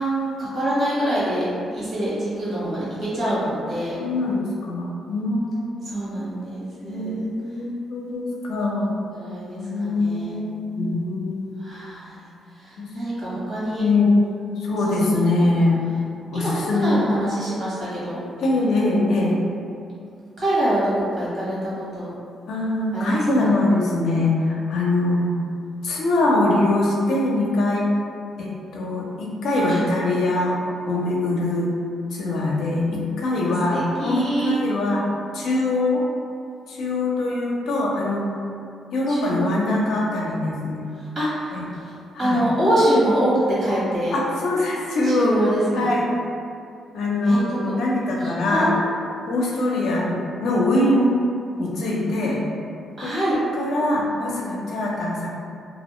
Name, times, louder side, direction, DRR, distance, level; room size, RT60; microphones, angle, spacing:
voice 1, 0.0-1.5 1.7-4.0 5.8-7.2 9.1-10.4 11.6-12.2 12.6-13.8 15.0-15.3 16.3-18.2 20.4-22.1 22.9-23.5 29.7-29.8 33.4-34.5 39.1-39.5 41.1-41.5 42.2-43.3 43.6-44.2 45.0-45.9 47.2-47.4 48.5-48.7 53.0-53.3, right 1 dB, 45° right, -9 dB, 1.2 m, -25 dB
voice 2, 4.0-5.9 6.8-9.0 9.6-11.6 12.8-12.9 13.8-14.2 14.6-15.8 16.3-17.4 18.4-19.4 22.5-25.3 25.8-27.9 28.4-30.6 30.9-31.7 32.1-35.1 35.3-36.0 36.7-38.2 38.9-40.9 41.5-41.7 42.1-42.5 44.1-46.1 46.9-49.0 49.3-51.1 51.6-52.4 53.0-53.1 53.5-55.3, left 2 dB, 75° left, -3 dB, 0.5 m, -23 dB
2.5 x 2.0 x 3.0 m, 2.4 s
cardioid pair, 100°, 0 cm